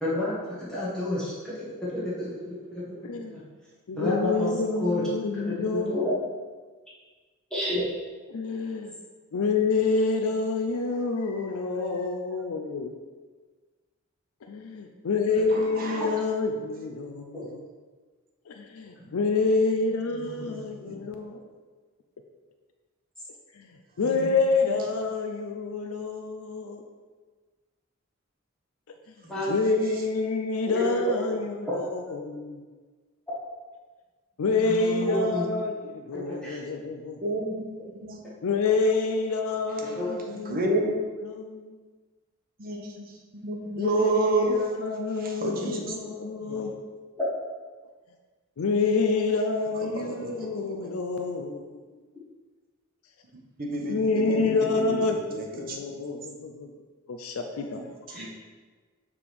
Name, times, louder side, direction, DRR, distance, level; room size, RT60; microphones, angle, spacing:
voice 1, 0.0-0.3 0.7-1.3 1.9-3.4 3.9-4.5 4.8-5.0 5.5-6.2 7.5-7.8 17.3-17.4 29.3-29.5 30.9-31.4 35.1-35.4 36.1-36.6 39.8-40.1 47.2-47.3 58.1-58.3, left 1 dB, 5° left, -9 dB, 1.4 m, -30 dB
voice 2, 3.0-3.4 3.9-6.1 8.3-8.9 9.3-12.9 14.5-17.6 18.5-21.4 23.6-23.7 24.0-26.8 29.5-32.6 34.4-37.2 38.4-40.8 41.3-41.7 43.8-46.7 48.6-51.8 53.9-56.7 57.1-57.8 58.1-58.3, left 3 dB, 80° left, 4 dB, 0.5 m, -27 dB
voice 3, 15.5-16.2 19.0-19.1 20.1-20.9 24.0-24.3 24.7-24.8 29.2-29.4 29.9-30.0 34.6-35.5 37.2-38.2 39.7-40.0 40.3-41.0 42.6-44.6 45.2-46.0 46.4-46.6 49.9-50.9 53.6-56.0 57.7-58.3, right 2 dB, 45° right, 0 dB, 1.0 m, -31 dB
6.8 x 3.6 x 4.7 m, 1.4 s
head